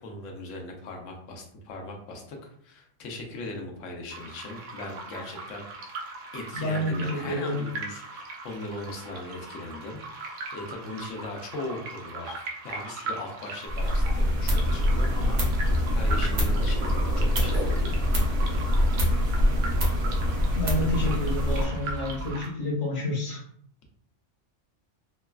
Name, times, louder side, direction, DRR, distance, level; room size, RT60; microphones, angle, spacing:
voice 1, 0.0-5.9 6.3-16.9 17.1-18.0, left 2 dB, 85° left, 2 dB, 1.0 m, -39 dB
sound 1, 4.1-22.5, right 3 dB, 85° right, 1.0 m, -39 dB
voice 2, 6.5-7.6 20.5-23.4, left 1 dB, 50° left, -2 dB, 0.8 m, -29 dB
sound 2, 13.7-21.6, left 1 dB, 65° right, 1.1 m, -24 dB
sound 3, 15.4-22.3, right 2 dB, 30° left, 0.4 m, -38 dB
3.2 x 2.3 x 2.2 m, 0.66 s
omnidirectional pair, 1.3 m